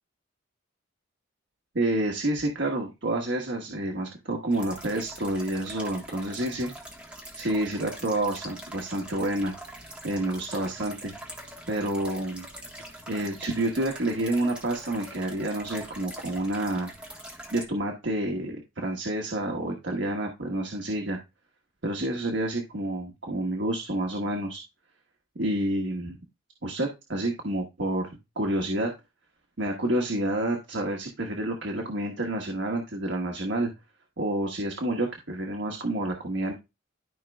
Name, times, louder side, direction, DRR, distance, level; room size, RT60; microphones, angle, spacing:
voice 1, 1.7-6.7 7.3-9.5 10.0-11.1 11.7-12.5 13.1-16.9 17.5-21.2 21.8-24.6 25.3-26.2 26.6-28.1 28.3-28.9 29.6-33.7 34.2-36.5, right 1 dB, 65° right, 1 dB, 1.4 m, -29 dB
sound 1, 4.5-17.7, right 1 dB, 5° right, 1.5 m, -43 dB
13.0 x 5.2 x 2.3 m, 0.25 s
head